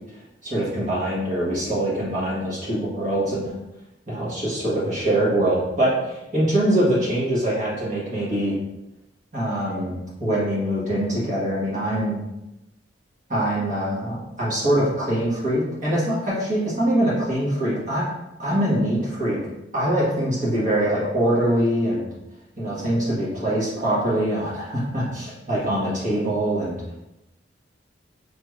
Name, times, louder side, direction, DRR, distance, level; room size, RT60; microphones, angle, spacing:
voice 1, 0.4-3.5 4.1-8.6 9.3-12.2 13.3-18.1 18.4-19.4 19.7-22.1 22.6-26.8, right 1 dB, 45° right, -7 dB, 1.3 m, -23 dB
4.8 x 3.2 x 2.4 m, 0.93 s
head